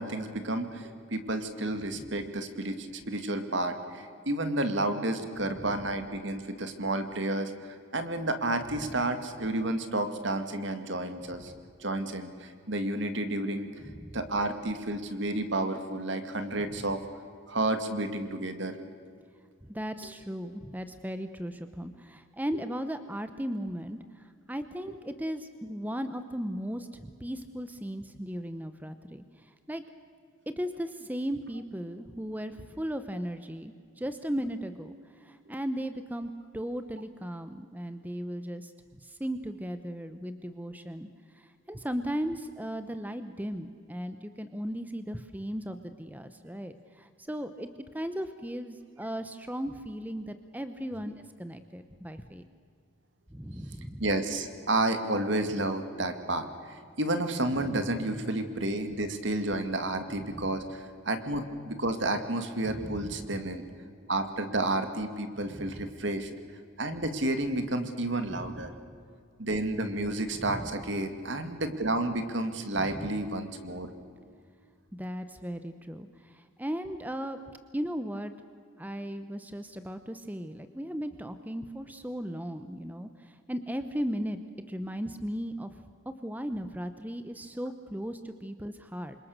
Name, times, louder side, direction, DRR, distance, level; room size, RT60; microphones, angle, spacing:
voice 1, 0.0-7.5 7.9-11.5 11.8-13.7 14.1-17.0 17.5-18.9 54.0-63.6 64.1-66.3 66.8-68.7 69.4-73.9, right 2 dB, 65° right, 8 dB, 2.3 m, -31 dB
voice 2, 13.8-14.2 16.7-16.8 19.6-29.8 30.5-47.7 47.9-52.4 53.3-54.1 57.5-57.8 60.2-60.5 62.7-63.4 65.5-65.9 68.3-68.6 70.4-70.7 72.8-73.2 74.9-77.4 77.7-78.3 78.8-84.4 84.7-89.2, equal, 10° right, 10 dB, 0.8 m, -37 dB
28.5 x 26.0 x 6.7 m, 2.2 s
head